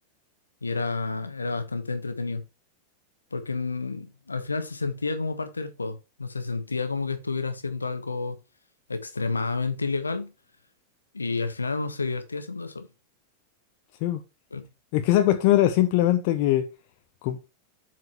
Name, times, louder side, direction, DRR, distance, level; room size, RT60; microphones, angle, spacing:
voice 1, 0.6-2.4 3.3-8.4 8.9-10.3 11.1-12.9 14.5-14.7, left 3 dB, 80° left, 1.3 m, -30 dB
voice 2, 14.9-16.7 17.2-17.4, left 13 dB, 45° left, 0.8 m, -21 dB
7.8 x 4.7 x 4.4 m
figure-of-eight pair, 90°, 0 cm